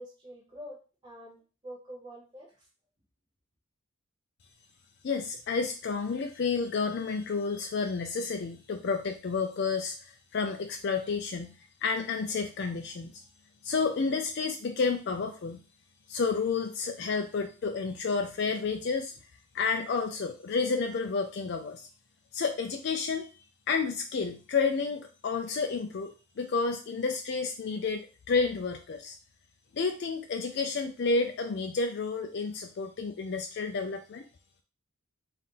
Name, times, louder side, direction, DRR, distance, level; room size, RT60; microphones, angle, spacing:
voice 1, 0.0-1.4 1.6-2.7, equal, 20° right, -6 dB, 0.8 m, -46 dB
voice 2, 5.0-13.2 13.6-15.6 16.1-19.1 19.5-21.9 22.3-26.1 26.4-29.2 29.7-34.2, left 4 dB, 50° left, 5 dB, 0.3 m, -30 dB
4.1 x 2.5 x 3.7 m, 0.35 s
head